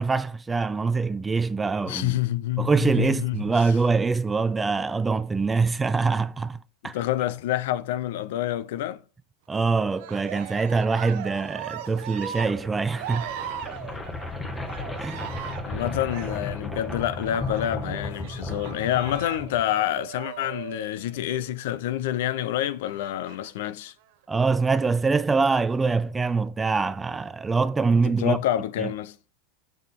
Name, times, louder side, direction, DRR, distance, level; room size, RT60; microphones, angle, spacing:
voice 1, 0.0-2.2 2.6-7.0 9.5-13.3 15.0-15.3 24.3-28.4 28.8-28.9, right 4 dB, 10° right, 0.3 m, -24 dB
voice 2, 1.9-3.4 6.9-9.0 15.6-23.9 28.0-29.2, left 12 dB, 75° left, 0.6 m, -27 dB
Cheering, 9.9-21.6 22.8-23.7 24.4-25.1, right 10 dB, 65° right, 0.8 m, -39 dB
sound 1, 12.0-20.0, left 2 dB, 10° left, 1.0 m, -35 dB
6.8 x 6.2 x 3.7 m
supercardioid pair, 140°, 0 cm